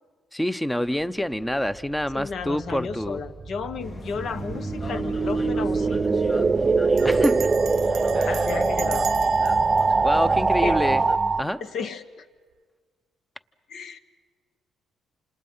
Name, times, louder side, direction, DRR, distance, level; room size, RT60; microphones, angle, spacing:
voice 1, 0.3-3.2 7.0-7.5 8.1-8.5 10.0-11.0 11.4-11.6, equal, 5° left, 14 dB, 0.8 m, -26 dB
voice 2, 2.1-6.1 8.3-9.1 10.6-10.8 11.6-12.2 13.7-14.0, left 5 dB, 65° left, 10 dB, 1.2 m, -33 dB
sound 1, 2.2-11.4, right 4 dB, 30° right, 0.7 m, -23 dB
sound 2, 3.8-11.2, left 3 dB, 35° left, 1.0 m, -40 dB
Bell, 4.8-5.2 5.5-5.6 5.8-6.2 7.0-11.1, right 10 dB, 75° right, 0.7 m, -39 dB
27.5 x 27.5 x 5.7 m, 1.5 s
cardioid pair, 90°, 0 cm